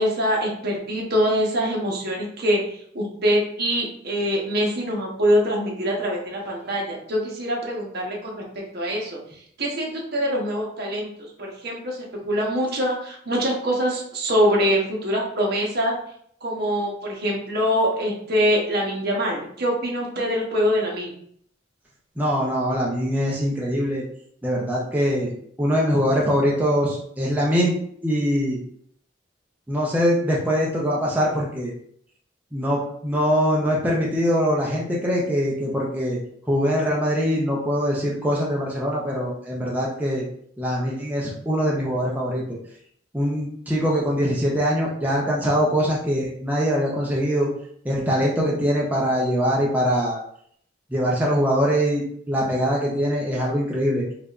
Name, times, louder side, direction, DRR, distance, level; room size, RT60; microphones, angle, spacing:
voice 1, 0.0-2.6 2.9-8.4 8.7-9.2 9.6-11.1 11.4-15.9 16.4-21.1, equal, 55° right, -2 dB, 1.0 m, -24 dB
voice 2, 22.2-24.0 24.4-25.3 25.6-27.8 28.0-28.6 29.7-31.7 32.5-36.2 36.5-40.3 40.6-42.6 43.1-47.5 47.8-50.2 50.9-54.0, equal, 10° right, -4 dB, 0.6 m, -23 dB
4.8 x 2.4 x 2.4 m, 0.65 s
head